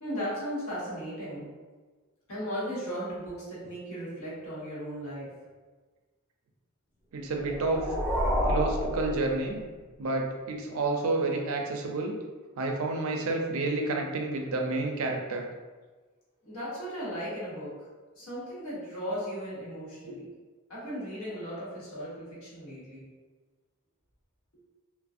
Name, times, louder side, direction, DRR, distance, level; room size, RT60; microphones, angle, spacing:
voice 1, 0.0-1.5 2.3-5.3 16.4-17.7 18.1-20.3 20.7-23.0, equal, 75° left, -8 dB, 1.0 m, -36 dB
voice 2, 7.1-7.8 8.5-9.6 10.0-12.1 12.6-15.4 20.1-20.2, right 2 dB, 75° right, 1 dB, 0.4 m, -29 dB
sound 1, 7.3-9.9, equal, 5° left, 0.5 m, -30 dB
2.5 x 2.1 x 2.4 m, 1.3 s
head